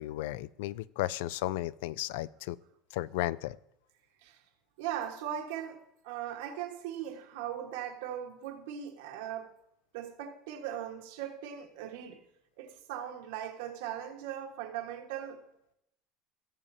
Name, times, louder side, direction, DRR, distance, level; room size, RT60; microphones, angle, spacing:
voice 1, 0.0-2.6 2.9-3.6, left 16 dB, 85° left, 0.3 m, -34 dB
voice 2, 4.8-9.5 9.9-12.2 12.6-15.4, right 10 dB, 90° right, 1.4 m, -39 dB
17.0 x 7.2 x 2.7 m
cardioid pair, 155°, 0 cm